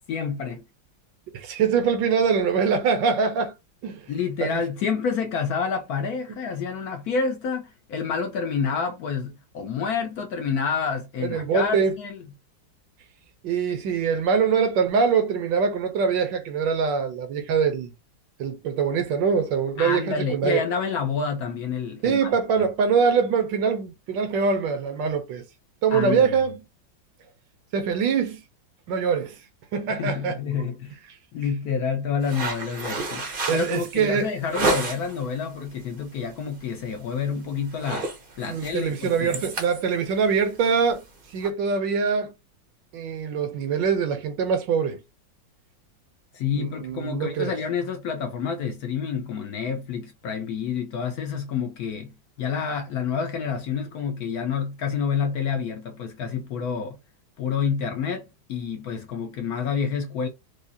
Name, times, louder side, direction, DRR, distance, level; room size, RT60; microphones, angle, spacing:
voice 1, 0.1-0.6 4.1-12.2 19.8-22.3 25.9-26.3 29.9-31.0 31.3-33.2 33.5-38.1 38.4-39.4 46.3-52.1 52.4-57.0 57.4-60.3, left 6 dB, 70° left, 0.9 m, -28 dB
voice 2, 1.3-3.5 3.8-4.1 4.4-4.5 11.2-11.9 13.4-17.9 18.4-20.6 22.0-25.4 25.8-26.6 27.7-28.4 28.9-29.4 29.7-30.4 33.5-34.3 38.5-41.0 41.3-42.3 42.9-45.0 46.5-47.5, right 6 dB, 75° right, 1.3 m, -23 dB
sound 1, 32.2-35.2 35.7-36.0 36.4-36.6 36.9-37.3 37.6-41.5, right 2 dB, 50° right, 0.6 m, -31 dB
4.8 x 2.0 x 2.6 m
omnidirectional pair, 2.1 m